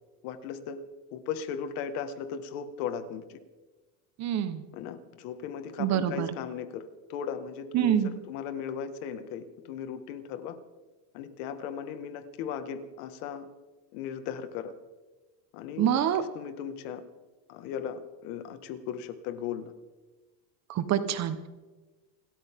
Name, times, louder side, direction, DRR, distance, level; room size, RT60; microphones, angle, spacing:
voice 1, 0.2-0.8 1.1-3.4 4.7-10.6 11.1-13.5 13.9-14.7 15.5-17.0 17.5-19.7, left 7 dB, 65° left, 9 dB, 2.0 m, -37 dB
voice 2, 4.2-4.6 5.8-6.3 7.7-8.1 15.8-16.2 20.7-21.5, right 10 dB, 35° right, 11 dB, 1.3 m, -26 dB
28.5 x 13.5 x 3.8 m, 1.2 s
supercardioid pair, 150°, 48 cm